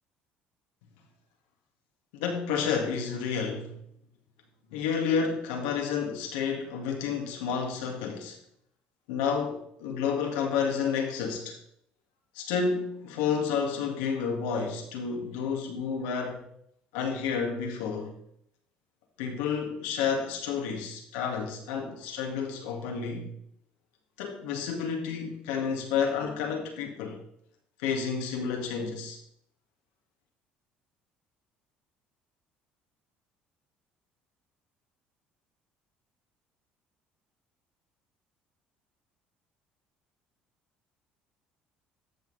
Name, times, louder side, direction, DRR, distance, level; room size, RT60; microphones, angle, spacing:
voice 1, 2.1-3.8 4.7-8.4 9.1-11.6 12.4-16.4 16.9-18.1 19.2-23.3 24.2-27.2 27.8-29.2, left 6 dB, 90° left, 2.1 m, -30 dB
14.0 x 5.9 x 4.1 m
supercardioid pair, 85°, 4 cm